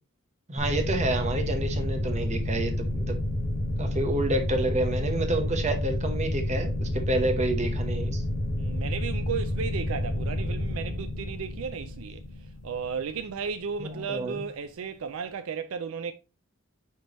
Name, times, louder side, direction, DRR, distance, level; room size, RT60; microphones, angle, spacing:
voice 1, 0.5-3.2 3.8-8.2 13.8-14.4, right 2 dB, 35° right, 1.0 m, -29 dB
sound 1, 0.6-13.8, left 1 dB, 35° left, 1.1 m, -30 dB
voice 2, 8.6-12.2 12.6-16.1, right 6 dB, 70° right, 0.4 m, -34 dB
9.3 x 3.4 x 3.0 m
head